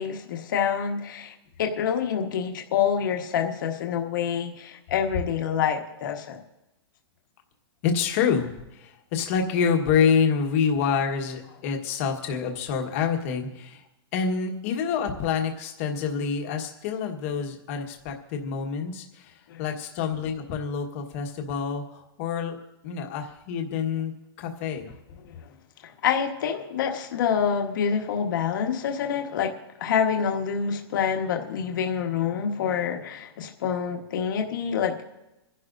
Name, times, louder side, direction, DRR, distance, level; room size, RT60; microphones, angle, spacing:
voice 1, 0.0-6.4 19.5-19.6 25.2-25.4 26.0-29.5 29.8-35.0, left 7 dB, 45° left, 2 dB, 1.4 m, -27 dB
voice 2, 7.8-13.8 14.1-22.6 22.8-24.1 24.4-24.9, left 6 dB, 30° left, 2 dB, 1.5 m, -27 dB
27.0 x 11.0 x 2.6 m, 0.96 s
hypercardioid pair, 175°, 14 cm